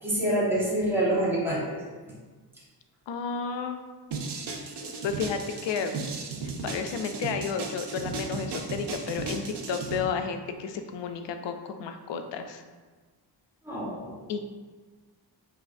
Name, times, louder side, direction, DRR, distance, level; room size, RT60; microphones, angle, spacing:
voice 1, 0.0-1.8 4.8-4.9 13.6-14.1, right 1 dB, 5° right, -7 dB, 1.3 m, -27 dB
voice 2, 3.1-3.8 5.0-6.0 6.4-12.6 14.3-14.4, left 6 dB, 75° left, 7 dB, 0.5 m, -32 dB
sound 1, 4.1-10.0, right 4 dB, 65° right, 0.7 m, -35 dB
5.5 x 2.8 x 2.5 m, 1.4 s
cardioid pair, 85°, 44 cm